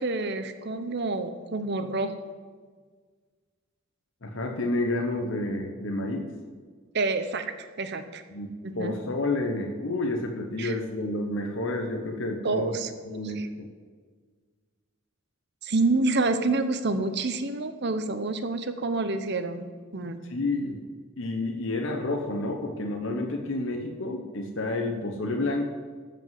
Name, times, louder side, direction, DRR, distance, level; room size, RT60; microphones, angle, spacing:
voice 1, 0.0-2.2 6.9-7.5 7.8-8.2 8.6-9.0 10.6-10.7 12.4-12.9 13.2-13.5 15.6-19.7 19.9-20.2, right 3 dB, 50° right, 9 dB, 0.8 m, -28 dB
voice 2, 4.2-6.3 8.3-8.5 8.7-12.7 13.1-13.7 20.3-20.8 21.2-25.7, left 2 dB, 60° left, 2 dB, 1.0 m, -30 dB
13.5 x 5.2 x 7.7 m, 1.5 s
head